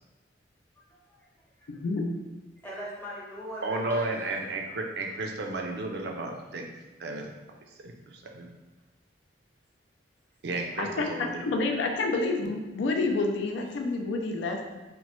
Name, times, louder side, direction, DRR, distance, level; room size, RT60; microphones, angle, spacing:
voice 1, 0.8-1.3 1.6-1.7 2.6-4.3, equal, 10° left, -6 dB, 0.6 m, -40 dB
voice 2, 1.7-2.1 10.8-14.8, left 3 dB, 80° left, 3 dB, 0.4 m, -29 dB
voice 3, 3.6-6.7 7.0-7.3 7.6-8.5 10.4-11.5, right 2 dB, 65° right, 2 dB, 0.4 m, -33 dB
2.9 x 2.1 x 3.0 m, 1.1 s
head